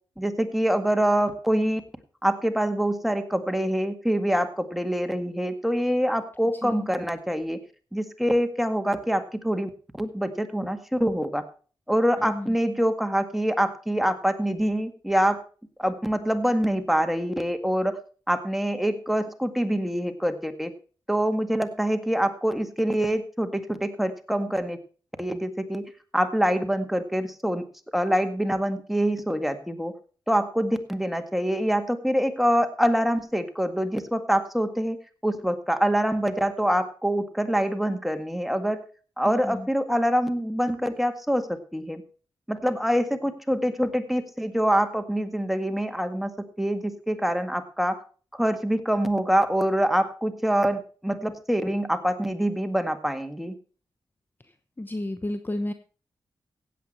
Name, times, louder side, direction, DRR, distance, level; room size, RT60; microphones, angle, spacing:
voice 1, 0.2-1.8 2.2-7.6 7.9-9.7 10.0-11.4 11.9-15.4 15.8-18.0 18.3-20.7 21.1-24.8 25.2-25.8 26.1-27.6 27.9-29.9 30.3-35.0 35.2-38.8 39.2-42.0 42.5-46.3 46.6-48.0 48.3-53.5, equal, ahead, 7 dB, 1.9 m, -25 dB
voice 2, 54.8-55.7, left 1 dB, 20° left, 10 dB, 0.9 m, -31 dB
16.0 x 8.1 x 4.4 m, 0.39 s
cardioid pair, 60°, 9 cm